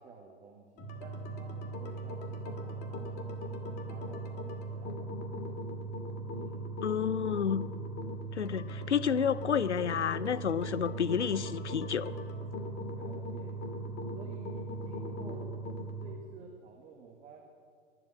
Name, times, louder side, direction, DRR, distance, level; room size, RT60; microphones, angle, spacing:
voice 1, 0.0-5.5 6.3-6.7 12.9-13.6 14.1-15.5 16.0-17.4, right 5 dB, 20° right, 0 dB, 1.6 m, -52 dB
sound 1, 0.8-16.1, right 1 dB, 30° left, 2.2 m, -39 dB
voice 2, 6.8-7.6 8.3-12.1, left 7 dB, 75° left, 17 dB, 0.7 m, -30 dB
23.0 x 8.1 x 7.5 m, 2.1 s
figure-of-eight pair, 110°, 34 cm